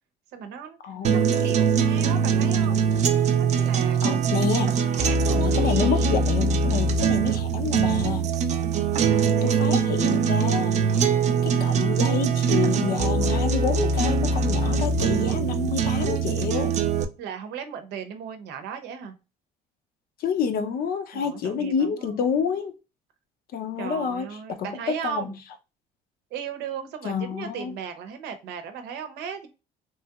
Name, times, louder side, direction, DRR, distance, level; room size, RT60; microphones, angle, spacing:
voice 1, 0.3-0.8 1.1-2.9 3.4-4.0 4.9-6.1 9.0-9.7 11.5-11.9 17.2-19.1 21.1-22.2 23.8-25.4 26.3-29.5, right 7 dB, 80° right, 0.6 m, -36 dB
voice 2, 0.8-1.5 4.0-4.8 5.3-8.3 9.4-10.8 11.4-16.7 20.2-22.8 23.5-25.4 27.0-27.8, left 6 dB, 60° left, 0.6 m, -28 dB
sound 1, 1.0-17.0, right 5 dB, 45° right, 0.4 m, -22 dB
3.1 x 2.8 x 2.3 m
cardioid pair, 110°, 17 cm